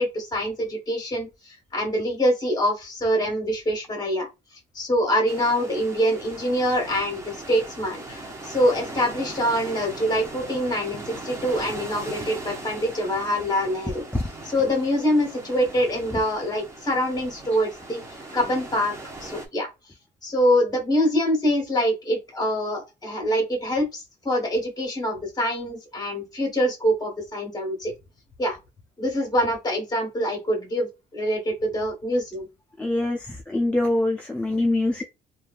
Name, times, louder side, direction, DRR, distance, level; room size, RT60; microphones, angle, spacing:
voice 1, 0.0-4.3 4.7-14.0 14.4-18.0 18.3-18.9 19.2-19.7 20.2-27.9 28.4-28.6 29.0-32.5, equal, 25° left, 1.3 m, -25 dB
sound 1, 5.3-19.5, right 2 dB, 15° right, 0.7 m, -39 dB
voice 2, 32.8-35.0, left 2 dB, 5° left, 0.4 m, -24 dB
3.0 x 2.4 x 2.4 m
cardioid pair, 110°, 17 cm